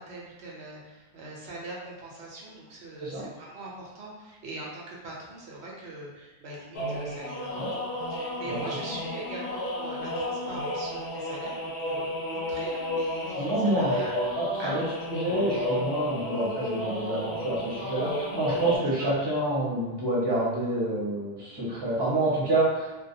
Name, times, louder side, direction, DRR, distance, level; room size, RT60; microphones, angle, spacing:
voice 1, 0.0-14.2 14.6-14.8 19.0-19.1, right 2 dB, 90° right, -4 dB, 0.9 m, -42 dB
sound 1, 6.7-18.8, left 1 dB, 85° left, 0.8 m, -32 dB
voice 2, 8.4-8.9 13.4-14.0 14.3-22.9, right 1 dB, 25° right, -8 dB, 0.7 m, -28 dB
2.2 x 2.1 x 2.6 m, 1.2 s
omnidirectional pair, 1.1 m